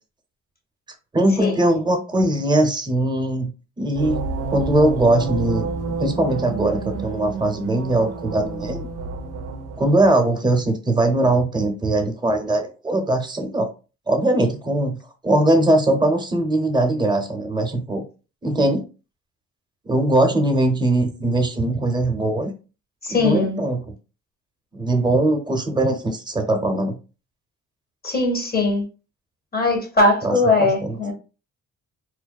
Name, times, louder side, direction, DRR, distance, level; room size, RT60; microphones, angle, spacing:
voice 1, 1.1-3.5 3.8-4.3 4.5-5.7 6.0-8.9 9.8-13.7 14.1-15.0 15.2-18.0 18.4-18.9 19.8-22.5 23.1-23.9 24.7-27.0 30.2-31.0, right 1 dB, 15° right, 0.7 m, -20 dB
sound 1, 3.9-10.1, right 4 dB, 55° right, 0.5 m, -29 dB
voice 2, 23.0-23.6 28.0-28.8 29.5-31.1, left 2 dB, 30° left, 1.0 m, -20 dB
2.5 x 2.2 x 2.2 m
cardioid pair, 90°, 30 cm